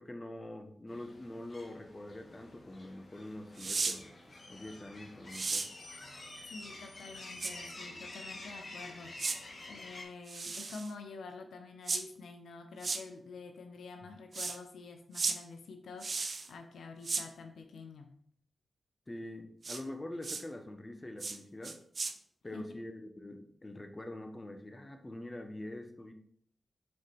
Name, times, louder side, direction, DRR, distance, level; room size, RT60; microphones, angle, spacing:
voice 1, 0.0-4.1 4.5-5.7 14.0-14.1 19.1-21.8 22.4-26.1, left 1 dB, 25° left, 5 dB, 1.1 m, -45 dB
sound 1, 0.9-10.0, left 2 dB, 50° left, 1.7 m, -49 dB
sound 2, 3.6-4.0 5.3-5.7 7.4-7.5 9.2-9.4 10.3-10.9 11.9-12.0 12.8-13.0 14.3-14.6 15.1-15.4 16.0-16.5 17.0-17.2 19.6-19.8 20.2-20.4 21.2-21.4 21.6-22.1, right 4 dB, 55° right, 0.7 m, -34 dB
voice 2, 6.5-9.3 9.7-18.1 22.5-22.6, left 4 dB, 85° left, 5 dB, 0.7 m, -48 dB
7.8 x 4.3 x 3.4 m, 0.64 s
cardioid pair, 50°, 0 cm